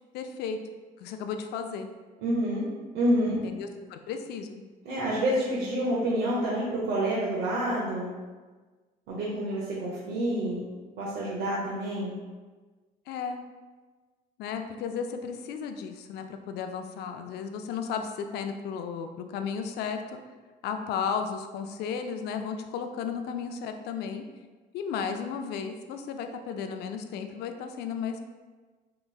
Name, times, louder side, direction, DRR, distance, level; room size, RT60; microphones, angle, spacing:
voice 1, 0.1-0.6 1.0-1.9 3.3-4.6 13.1-13.4 14.4-20.2 20.6-24.2 24.7-28.2, left 6 dB, 75° left, 6 dB, 0.4 m, -34 dB
voice 2, 2.2-2.6 2.9-3.4 4.8-8.1 9.1-10.6 11.0-12.2, right 1 dB, 80° right, -6 dB, 0.8 m, -28 dB
4.4 x 3.0 x 2.3 m, 1.3 s
cardioid pair, 110°, 17 cm